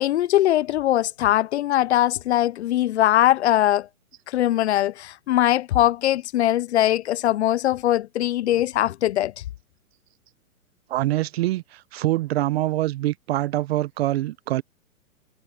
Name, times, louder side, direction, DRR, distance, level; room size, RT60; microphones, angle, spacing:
voice 1, 0.0-3.9 4.3-9.3, left 13 dB, 50° left, 0.6 m, -21 dB
voice 2, 10.9-14.6, right 16 dB, 45° right, 0.9 m, -24 dB
hypercardioid pair, 140°, 43 cm